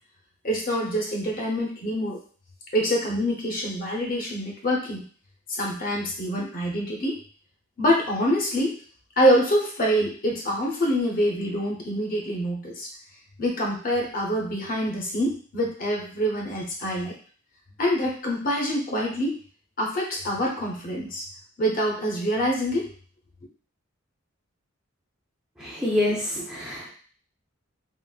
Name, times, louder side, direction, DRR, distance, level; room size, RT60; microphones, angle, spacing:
voice 1, 0.4-2.2 2.7-5.0 5.5-7.2 7.8-8.8 9.2-12.9 13.4-17.1 17.8-19.4 19.8-21.2 21.6-22.9, equal, 45° left, -1 dB, 0.7 m, -25 dB
voice 2, 25.6-26.9, left 1 dB, 5° right, -6 dB, 0.6 m, -26 dB
3.7 x 2.0 x 2.3 m, 0.43 s
head